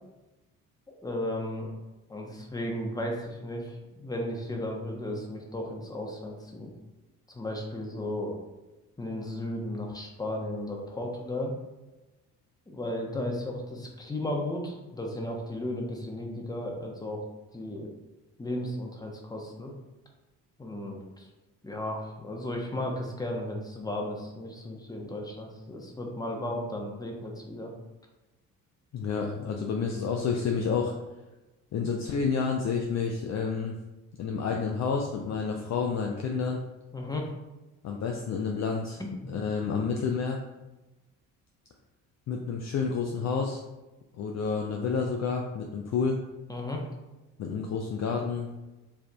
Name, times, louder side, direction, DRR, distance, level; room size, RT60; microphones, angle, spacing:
voice 1, 0.9-1.7 2.1-6.7 7.3-8.4 9.0-11.6 12.7-17.2 17.5-17.9 18.4-19.8 20.6-21.3 21.6-27.7 36.9-37.3 46.5-46.8, left 1 dB, 10° left, 1 dB, 0.8 m, -35 dB
voice 2, 28.9-30.9 31.7-33.7 34.2-36.6 37.8-39.0 39.3-40.4 42.3-43.6 44.2-46.2 47.4-48.5, left 5 dB, 40° left, 1 dB, 0.5 m, -29 dB
4.5 x 2.5 x 2.3 m, 1.1 s
hypercardioid pair, 50°, 42 cm